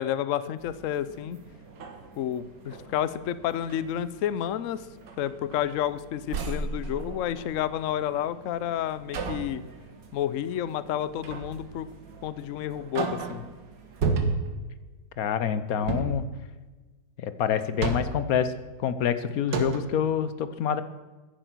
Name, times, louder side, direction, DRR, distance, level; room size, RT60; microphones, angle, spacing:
voice 1, 0.0-1.4 2.2-4.8 5.2-9.6 10.1-11.9 12.2-13.4, left 10 dB, 85° left, 15 dB, 0.7 m, -30 dB
sound 1, 0.6-14.0, right 5 dB, 50° right, 1.9 m, -52 dB
sound 2, 1.1-1.2 1.7-2.9 3.4-3.9 4.4-4.6 5.0-5.9 6.3-7.8 9.1-9.6 11.2-11.7 12.1-12.2 12.7-13.5 14.0-14.6 15.8-16.3 17.5-18.3 19.1-19.2 19.5-20.0, right 4 dB, 65° right, 2.0 m, -32 dB
voice 2, 15.2-16.2 17.2-18.5 18.8-20.8, left 8 dB, 60° left, 13 dB, 1.1 m, -26 dB
15.0 x 10.5 x 6.1 m, 1.3 s
omnidirectional pair, 2.0 m